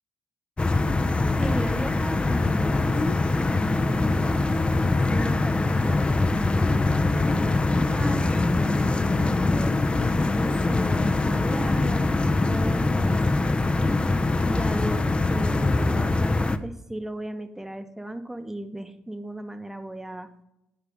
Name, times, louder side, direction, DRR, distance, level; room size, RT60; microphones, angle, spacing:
sound 1, 0.6-16.6, left 2 dB, 25° left, 0.5 m, -23 dB
voice 1, 1.4-3.0 3.4-4.5 5.1-9.8 10.3-14.0 14.5-20.3, right 1 dB, 10° right, 8 dB, 0.8 m, -36 dB
9.9 x 4.8 x 3.5 m, 0.89 s
supercardioid pair, 60°, 4 cm